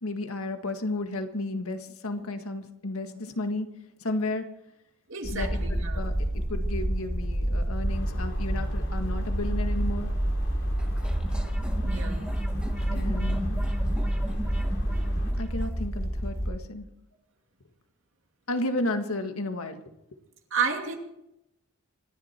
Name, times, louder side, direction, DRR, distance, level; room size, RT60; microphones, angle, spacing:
voice 1, 0.0-3.7 4.0-4.4 5.2-10.1 12.9-13.6 15.4-16.9 18.5-19.8, left 2 dB, 80° left, 6 dB, 1.8 m, -33 dB
voice 2, 5.1-6.1 10.1-10.2 11.8-12.3 20.5-21.0, right 5 dB, 60° right, 2 dB, 2.8 m, -31 dB
sound 1, 5.2-16.5, right 1 dB, 15° left, 6.2 m, -28 dB
sound 2, 7.9-15.3, left 1 dB, 55° left, 2.9 m, -45 dB
sound 3, 10.8-15.7, equal, 5° right, 1.4 m, -39 dB
26.5 x 11.5 x 4.5 m, 0.84 s
head